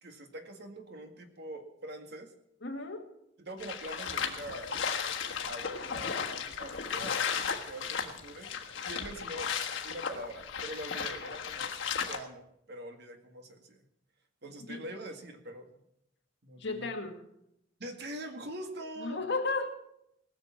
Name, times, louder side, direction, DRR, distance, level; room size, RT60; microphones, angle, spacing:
voice 1, 0.0-2.3 3.4-4.9 5.5-9.5 9.8-11.7 12.1-13.9 14.4-15.7 16.4-16.9 17.8-19.2, right 1 dB, 60° right, 5 dB, 1.9 m, -44 dB
voice 2, 2.6-3.1 14.7-14.9 16.6-17.2 19.0-19.7, left 3 dB, 65° left, 3 dB, 2.0 m, -34 dB
sound 1, 3.6-12.2, left 6 dB, 90° left, 1.6 m, -35 dB
19.5 x 6.7 x 7.3 m, 0.77 s
head